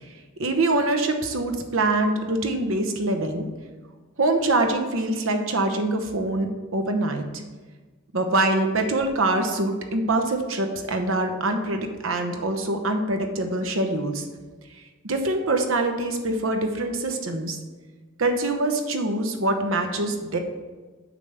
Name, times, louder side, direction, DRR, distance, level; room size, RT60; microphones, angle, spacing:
voice 1, 0.4-3.5 4.2-7.2 8.1-14.2 15.0-17.6 18.2-20.4, right 2 dB, 65° right, 5 dB, 0.9 m, -24 dB
8.9 x 3.4 x 6.6 m, 1.3 s
head